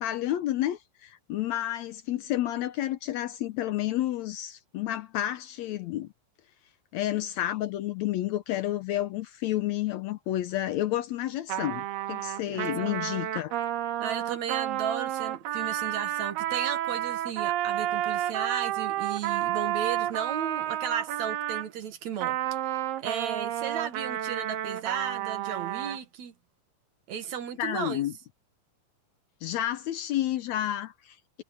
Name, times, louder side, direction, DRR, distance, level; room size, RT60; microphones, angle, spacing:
voice 1, 0.0-6.1 6.9-13.5 27.6-28.1 29.4-31.4, left 13 dB, 80° left, 1.6 m, -30 dB
Trumpet, 11.5-21.7 22.2-26.0, right 12 dB, 85° right, 3.0 m, -31 dB
voice 2, 12.5-13.0 14.0-22.4 22.7-26.3 27.1-28.0, right 8 dB, 60° right, 2.5 m, -35 dB
omnidirectional pair, 4.0 m